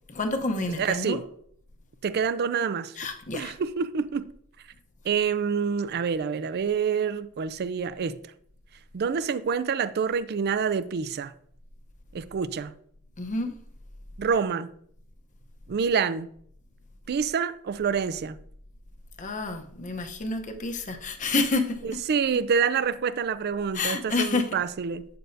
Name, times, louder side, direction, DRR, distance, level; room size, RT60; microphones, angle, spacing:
voice 1, 0.1-1.2 3.0-3.5 13.2-13.5 19.2-21.8 23.7-24.6, left 3 dB, 35° left, 0.8 m, -29 dB
voice 2, 0.8-1.2 2.0-2.9 3.3-4.3 5.0-8.2 8.9-11.3 12.1-12.7 14.2-14.7 15.7-16.3 17.1-18.4 21.8-25.1, right 6 dB, 45° right, 0.4 m, -27 dB
8.8 x 6.9 x 2.7 m
head